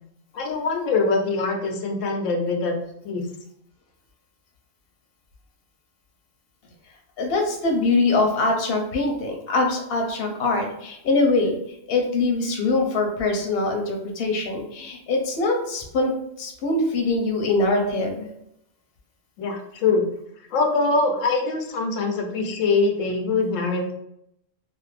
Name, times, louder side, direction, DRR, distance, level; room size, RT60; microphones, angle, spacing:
voice 1, 0.3-2.7 3.0-3.3 19.4-20.1 20.5-23.9, left 3 dB, 85° left, 3 dB, 0.9 m, -23 dB
voice 2, 7.2-11.5 11.9-16.1 16.4-18.3, left 2 dB, 55° left, 2 dB, 0.8 m, -23 dB
2.6 x 2.5 x 3.2 m, 0.76 s
omnidirectional pair, 1.3 m